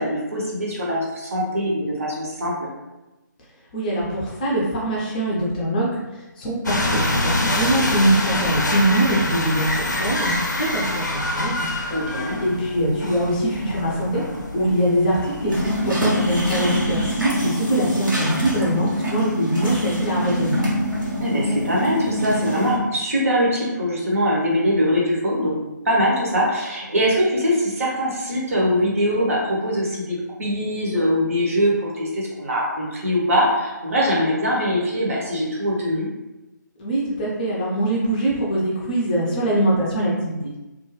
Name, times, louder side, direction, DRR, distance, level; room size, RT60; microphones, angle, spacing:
voice 1, 0.0-2.7 11.9-12.4 21.2-25.6 25.8-36.1, equal, 45° right, -3 dB, 0.8 m, -22 dB
voice 2, 3.7-11.7 12.4-14.2 14.5-20.7 36.8-40.6, right 1 dB, 25° left, -5 dB, 0.5 m, -23 dB
sound 1, 6.6-15.7, left 1 dB, 65° left, 0.6 m, -25 dB
sound 2, 15.5-22.8, equal, 80° right, 1.1 m, -24 dB
2.4 x 2.2 x 3.1 m, 1.0 s
figure-of-eight pair, 145°, 10 cm